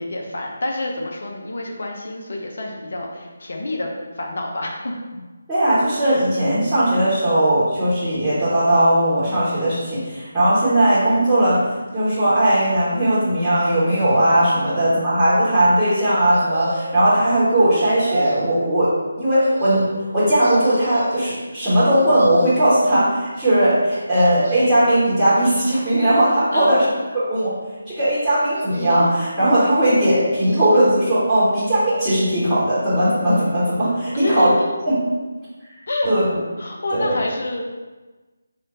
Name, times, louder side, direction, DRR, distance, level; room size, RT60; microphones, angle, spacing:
voice 1, 0.0-3.9 4.2-5.0 14.7-14.8 26.5-26.8 34.1-34.7 35.9-36.1 36.6-37.6, left 2 dB, 55° left, 0 dB, 0.7 m, -27 dB
voice 2, 5.5-19.9 20.1-26.9 27.1-27.6 27.9-34.5 34.9-35.0 36.0-36.4 36.9-37.2, right 1 dB, 5° right, -16 dB, 1.3 m, -18 dB
sound 1, 16.3-17.1 17.8-18.6 19.3-20.1 20.4-21.3 21.9-22.7 23.9-24.8 25.3-26.0 26.7-27.5 28.5-29.3 30.0-31.0 31.3-31.4, right 1 dB, 55° right, 0.7 m, -33 dB
3.5 x 2.6 x 3.8 m, 1.2 s
figure-of-eight pair, 155°, 0 cm